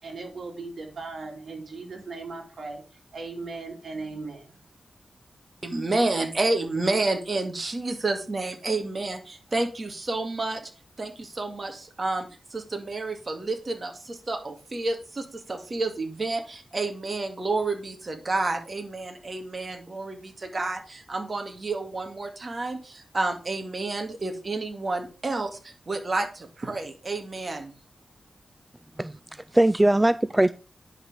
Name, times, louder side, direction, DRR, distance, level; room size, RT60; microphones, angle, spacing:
voice 1, 0.0-2.8 3.1-4.5, right 3 dB, 70° right, 2 dB, 3.0 m, -37 dB
voice 2, 5.6-10.7 11.0-27.7, right 2 dB, 45° right, 5 dB, 2.2 m, -30 dB
voice 3, 29.0-30.5, right 1 dB, 15° right, 15 dB, 0.4 m, -21 dB
10.0 x 5.9 x 5.1 m, 0.35 s
wide cardioid pair, 75°, 0 cm